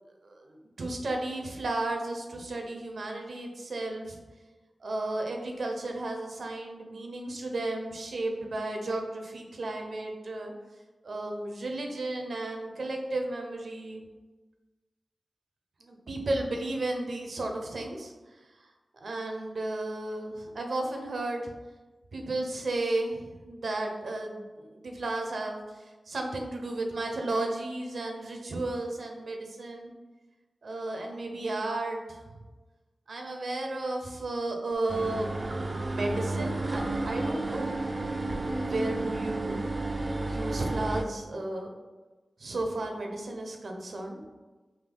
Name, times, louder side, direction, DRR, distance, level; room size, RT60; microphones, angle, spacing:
voice 1, 0.2-4.2 4.8-10.5 11.0-14.0 15.8-18.4 19.0-21.5 22.1-29.9 30.6-32.4 33.1-39.6 40.2-41.7 42.4-44.2, right 2 dB, 75° right, 2 dB, 0.6 m, -34 dB
sound 1, 34.9-41.0, right 2 dB, 40° right, 0.3 m, -31 dB
3.5 x 2.7 x 3.7 m, 1.2 s
wide cardioid pair, 70°, 0 cm